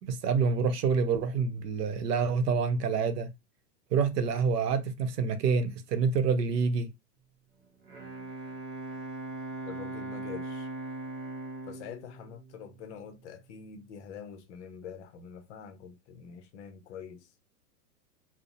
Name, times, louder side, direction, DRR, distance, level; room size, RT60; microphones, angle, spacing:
voice 1, 0.0-3.3 3.9-6.9, right 5 dB, 80° right, 0.7 m, -27 dB
Bowed string instrument, 7.6-13.4, right 2 dB, 55° right, 0.9 m, -40 dB
voice 2, 9.7-10.7 11.7-17.3, left 7 dB, 50° left, 0.5 m, -45 dB
2.6 x 2.0 x 2.5 m
hypercardioid pair, 125°, 48 cm